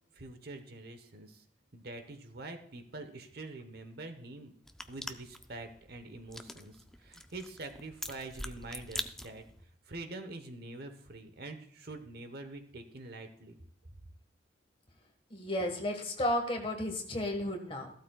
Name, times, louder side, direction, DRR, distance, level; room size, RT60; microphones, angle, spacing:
voice 1, 0.1-1.4 1.7-4.5 4.9-9.4 9.9-13.6, right 2 dB, 50° right, 7 dB, 1.0 m, -45 dB
sound 1, 4.6-9.6, left 1 dB, ahead, 0.3 m, -44 dB
voice 2, 15.3-17.9, left 1 dB, 25° left, 3 dB, 1.5 m, -33 dB
14.5 x 12.5 x 2.3 m, 0.65 s
head